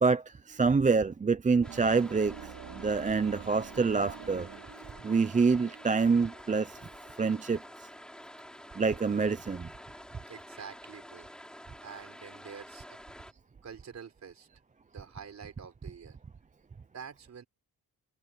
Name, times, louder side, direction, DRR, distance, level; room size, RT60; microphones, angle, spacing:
voice 1, 0.0-4.5 5.0-6.8 7.2-7.6 8.8-9.7, right 4 dB, 20° right, 0.6 m, -26 dB
sound 1, 1.6-13.3, equal, ahead, 5.1 m, -49 dB
sound 2, 1.6-8.5, right 9 dB, 75° right, 3.1 m, -48 dB
voice 2, 10.3-11.3 11.8-13.0 13.6-14.5 14.9-16.2 16.9-17.4, right 7 dB, 45° right, 4.5 m, -47 dB
wide cardioid pair, 155°, 36 cm